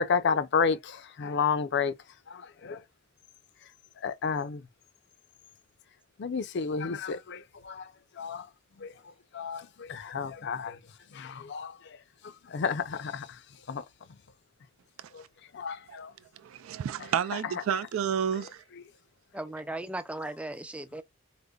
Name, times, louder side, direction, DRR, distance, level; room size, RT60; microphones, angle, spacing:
voice 1, 0.0-1.9 2.3-2.8 4.0-4.6 6.2-7.9 8.2-8.5 8.8-8.9 9.3-10.8 11.1-11.7 12.5-13.3 13.7-13.8 15.1-15.2 15.5-16.1, left 5 dB, 60° left, 0.5 m, -31 dB
voice 2, 16.4-18.6, right 8 dB, 90° right, 0.3 m, -30 dB
voice 3, 19.3-21.0, right 2 dB, 5° right, 0.3 m, -37 dB
5.0 x 2.1 x 2.3 m
head